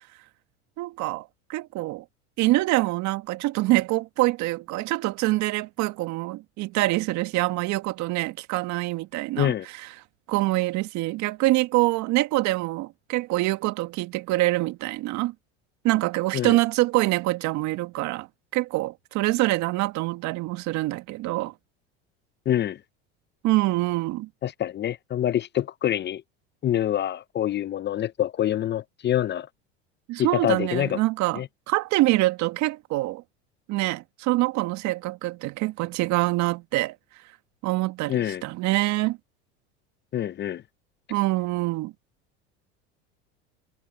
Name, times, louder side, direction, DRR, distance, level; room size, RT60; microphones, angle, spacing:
voice 1, 0.8-2.0 2.4-9.9 10.3-15.3 15.8-18.3 18.5-21.5 23.4-24.3 30.1-33.2 33.7-37.0 37.6-39.2 41.1-41.9, right 19 dB, 60° right, 1.9 m, -25 dB
voice 2, 22.5-22.8 24.4-26.2 26.6-29.5 30.2-31.0 31.3-31.5 38.1-38.4 40.1-40.6, left 11 dB, 35° left, 0.7 m, -26 dB
hypercardioid pair, 90°, 33 cm